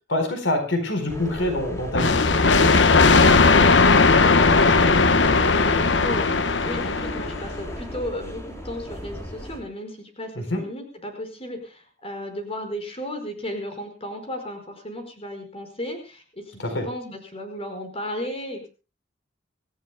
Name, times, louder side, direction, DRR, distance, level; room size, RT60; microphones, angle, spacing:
voice 1, 0.1-2.1 10.4-10.6 16.6-16.8, left 1 dB, 90° left, 7 dB, 4.3 m, -25 dB
sound 1, 1.1-9.6, equal, 15° left, 3.8 m, -35 dB
sound 2, 1.9-7.5, left 4 dB, 70° left, 1.0 m, -17 dB
voice 2, 3.5-16.4 16.8-18.7, equal, 35° left, 5 dB, 5.1 m, -34 dB
26.0 x 14.5 x 2.2 m, 0.32 s
head